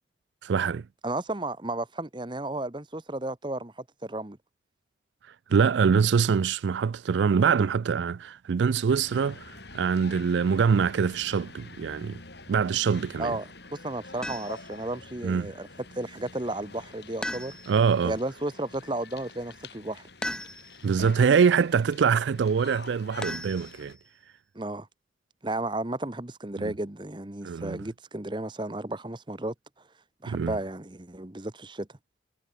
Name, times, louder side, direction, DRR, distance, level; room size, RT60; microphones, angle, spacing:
voice 1, 0.4-0.9 5.5-12.2 12.5-13.3 15.2-15.5 17.7-18.1 20.8-24.0 26.6-26.7 27.4-27.8 30.3-30.6, right 6 dB, 75° right, 0.4 m, -24 dB
voice 2, 1.0-3.7 4.0-4.4 13.2-15.7 15.9-17.6 18.0-20.1 24.5-24.9 25.4-29.5 30.2-31.9, right 2 dB, 25° right, 1.1 m, -33 dB
sound 1, 8.9-23.9, left 3 dB, 65° left, 5.9 m, -47 dB
sound 2, 14.2-14.8 17.2-17.9 20.2-20.9 23.2-24.1, left 1 dB, 5° left, 0.9 m, -37 dB
head